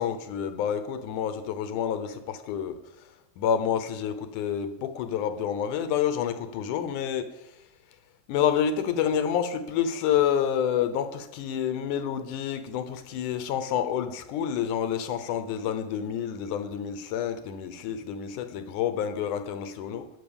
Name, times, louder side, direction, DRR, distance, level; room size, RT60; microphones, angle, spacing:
voice 1, 0.0-2.8 3.4-7.3 8.3-20.1, left 8 dB, 85° left, 10 dB, 2.4 m, -28 dB
18.0 x 6.4 x 7.0 m, 0.96 s
omnidirectional pair, 3.5 m